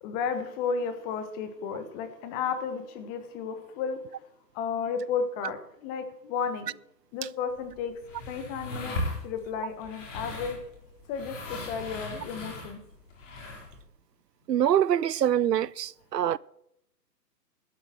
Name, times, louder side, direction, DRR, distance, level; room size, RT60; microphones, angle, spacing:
voice 1, 0.0-4.2 4.5-6.7 7.1-7.9 8.3-9.0 9.2-10.6 11.1-12.8, left 6 dB, 20° left, 1.2 m, -33 dB
sound 1, 7.5-13.8, left 1 dB, 50° left, 4.7 m, -38 dB
voice 2, 14.5-16.4, right 10 dB, 75° right, 0.6 m, -24 dB
12.5 x 8.6 x 7.5 m
figure-of-eight pair, 135°, 50 cm